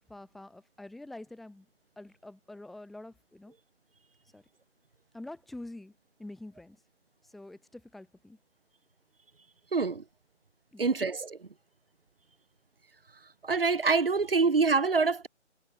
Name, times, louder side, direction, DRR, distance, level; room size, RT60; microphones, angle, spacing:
voice 1, 0.0-1.7 2.0-3.5 4.3-4.4 5.1-5.9 6.2-6.8 7.2-8.4 10.7-11.1, left 2 dB, ahead, 2.9 m, -46 dB
voice 2, 9.7-10.0 10.8-11.4 13.5-15.3, right 4 dB, 50° right, 1.3 m, -25 dB
hypercardioid pair, 180°, 36 cm